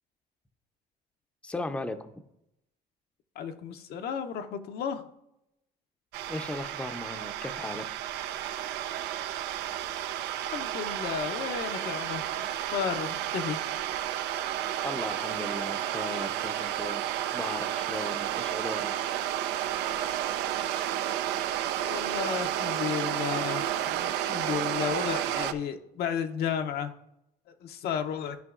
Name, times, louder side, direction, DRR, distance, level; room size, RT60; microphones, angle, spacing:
voice 1, 1.4-2.1 6.3-7.9 14.8-18.9, left 2 dB, 5° left, 7 dB, 0.6 m, -37 dB
voice 2, 3.4-5.1 10.4-13.6 21.8-26.9 27.5-28.4, left 8 dB, 70° left, 7 dB, 0.7 m, -33 dB
sound 1, 6.1-25.5, right 11 dB, 85° right, 0.4 m, -31 dB
12.5 x 5.2 x 2.4 m, 0.82 s
cardioid pair, 110°, 17 cm